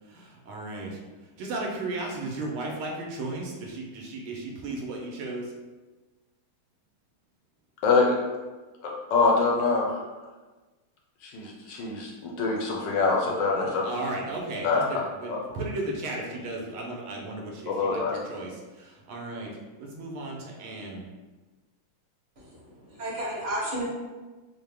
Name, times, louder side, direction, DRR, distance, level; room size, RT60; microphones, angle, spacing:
voice 1, 0.1-1.0 1.4-5.5 13.8-19.5 19.8-21.0, right 2 dB, 80° right, -1 dB, 1.6 m, -35 dB
voice 2, 8.8-10.0 11.2-13.8 14.6-14.8 17.7-18.2, left 4 dB, 70° left, -2 dB, 1.1 m, -24 dB
voice 3, 22.4-23.8, right 1 dB, 35° right, -8 dB, 0.7 m, -33 dB
4.6 x 2.1 x 3.4 m, 1.2 s
omnidirectional pair, 2.3 m